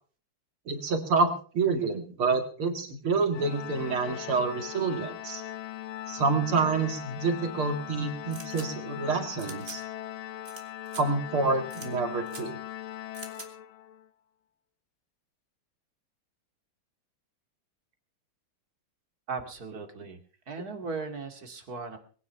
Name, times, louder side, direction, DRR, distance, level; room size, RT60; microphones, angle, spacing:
voice 1, 0.7-5.4 6.1-9.8 11.0-12.6, right 4 dB, 75° right, 6 dB, 3.0 m, -28 dB
Organ, 3.3-14.1, left 13 dB, 75° left, 1.7 m, -40 dB
sound 1, 8.3-8.7 9.4-9.8 10.4-10.6 10.9-11.0 11.7-11.9 12.3-12.4 13.1-13.5, right 3 dB, 30° right, 2.5 m, -44 dB
voice 2, 19.3-20.2 20.5-22.0, right 4 dB, 45° right, 6 dB, 2.7 m, -37 dB
21.5 x 9.7 x 5.7 m, 0.43 s
omnidirectional pair, 2.4 m